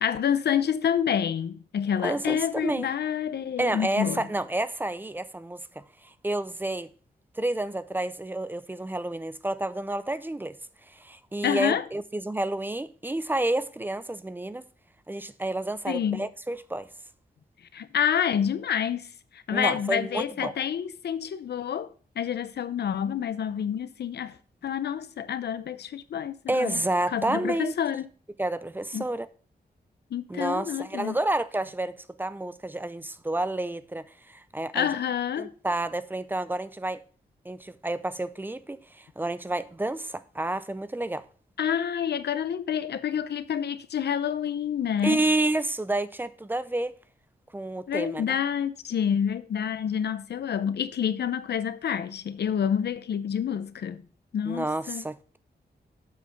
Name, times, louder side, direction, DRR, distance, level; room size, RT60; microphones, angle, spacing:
voice 1, 0.0-4.3 11.4-11.8 15.9-16.3 17.7-24.4 24.6-26.8 27.1-28.1 28.9-29.0 30.1-31.2 34.7-35.5 41.6-45.2 47.9-54.0 54.3-55.0, left 8 dB, 75° left, 0.6 m, -28 dB
voice 2, 2.0-2.9 3.6-5.8 6.2-6.9 7.4-10.5 10.9-14.6 15.1-16.9 19.5-20.5 26.5-27.7 28.4-29.3 30.3-34.9 35.4-37.0 37.5-41.2 45.0-46.9 47.5-48.4 54.5-55.4, right 2 dB, 10° right, 0.4 m, -30 dB
7.6 x 5.8 x 5.3 m
wide cardioid pair, 175°, 17 cm